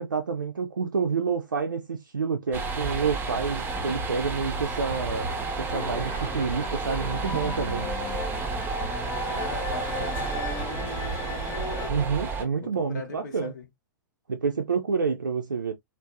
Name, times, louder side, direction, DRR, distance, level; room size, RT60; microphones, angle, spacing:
voice 1, 0.0-5.3 5.6-7.9 11.9-13.5 14.3-15.7, right 5 dB, 75° right, 0.4 m, -28 dB
sound 1, 2.5-12.4, right 4 dB, 20° right, 0.6 m, -31 dB
sound 2, 5.7-11.9, left 5 dB, 30° left, 0.6 m, -37 dB
voice 2, 9.3-11.0 12.6-13.7, left 4 dB, 60° left, 0.8 m, -40 dB
2.6 x 2.1 x 2.3 m
figure-of-eight pair, 100°, 11 cm